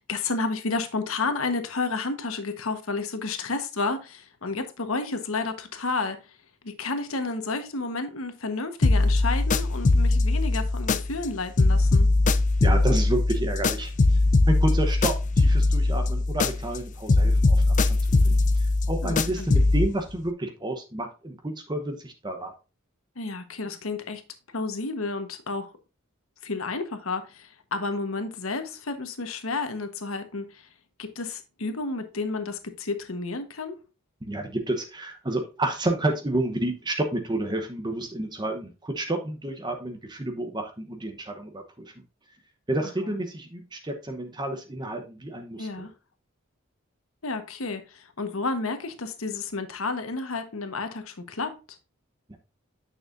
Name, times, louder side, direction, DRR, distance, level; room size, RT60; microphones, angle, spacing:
voice 1, 0.0-6.2 6.6-12.1 19.0-19.5 23.2-24.2 24.5-25.7 26.4-30.7 31.0-33.8 43.0-43.1 45.6-45.9 47.2-51.8, left 3 dB, 85° left, 1.2 m, -31 dB
sound 1, 8.8-11.3 11.6-16.8 17.1-19.9, left 2 dB, 35° left, 0.4 m, -21 dB
voice 2, 12.6-14.2 14.5-22.5 34.2-41.9 42.7-45.9 52.3-52.4, right 1 dB, 20° right, 0.9 m, -30 dB
9.0 x 6.4 x 2.6 m
head